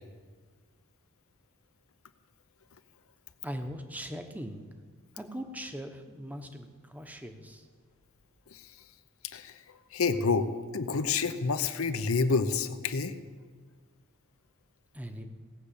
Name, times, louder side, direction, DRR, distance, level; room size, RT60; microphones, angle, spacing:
voice 1, 3.4-4.7 5.1-7.7 14.9-15.3, equal, 5° right, 6 dB, 1.0 m, -40 dB
voice 2, 9.9-13.1, left 4 dB, 75° left, 11 dB, 0.8 m, -28 dB
17.5 x 6.7 x 8.4 m, 1.5 s
head